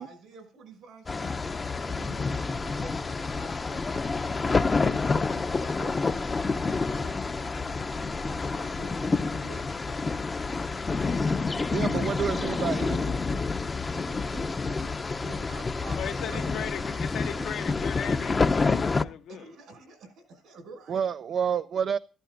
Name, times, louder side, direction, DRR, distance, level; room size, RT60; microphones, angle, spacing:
voice 1, 0.0-1.4 1.8-8.1 8.6-10.3 13.9-16.5 16.8-17.5 19.3-21.0, right 2 dB, 80° right, 5.8 m, -48 dB
sound 1, 1.1-19.0, left 4 dB, 30° left, 0.7 m, -28 dB
voice 2, 11.7-13.2 20.9-22.0, right 7 dB, 60° right, 0.5 m, -29 dB
voice 3, 15.9-19.4, left 9 dB, 75° left, 1.1 m, -37 dB
14.0 x 14.0 x 2.6 m
cardioid pair, 90°, 0 cm